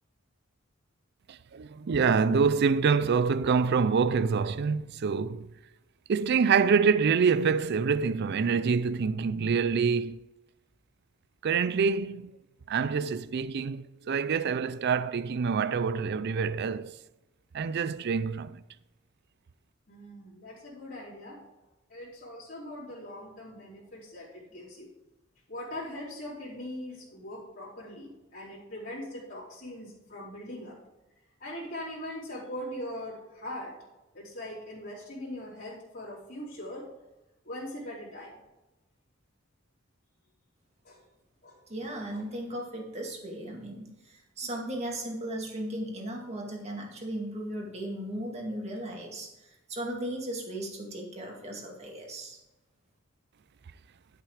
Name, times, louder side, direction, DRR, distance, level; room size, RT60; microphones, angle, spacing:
voice 1, 1.3-5.5 6.1-10.2 11.4-12.3 12.7-16.9 17.5-18.6, right 5 dB, 55° right, 0.4 m, -26 dB
voice 2, 19.9-21.4 21.9-24.9 25.5-30.8 31.4-33.7 34.1-36.9 37.4-38.4 40.8-41.0 41.4-42.2, left 1 dB, 50° left, 3.2 m, -41 dB
voice 3, 41.7-52.4, right 1 dB, 35° right, 2.1 m, -37 dB
11.5 x 5.9 x 4.9 m
head